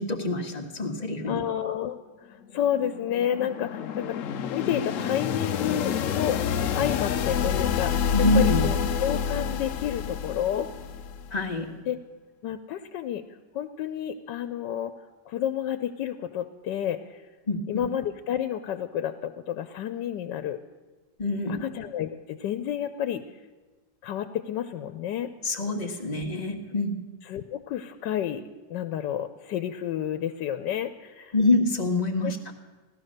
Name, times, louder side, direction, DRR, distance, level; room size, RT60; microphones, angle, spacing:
voice 1, 0.0-1.4 8.1-8.7 11.3-11.7 17.5-17.9 21.2-21.6 25.4-27.0 31.3-32.5, left 2 dB, 25° left, 2 dB, 1.4 m, -26 dB
voice 2, 1.3-2.0 2.3-4.2 4.5-6.4 6.7-10.7 11.9-12.0 12.4-13.2 13.5-14.9 15.3-17.2 17.7-20.6 21.6-23.2 24.0-25.3 27.3-28.4 28.7-31.3 32.2-32.3, left 10 dB, 85° left, 10 dB, 1.3 m, -30 dB
sound 1, 2.5-11.4, left 7 dB, 65° left, 0.9 m, -28 dB
16.5 x 12.5 x 6.5 m, 1.2 s
omnidirectional pair, 1.9 m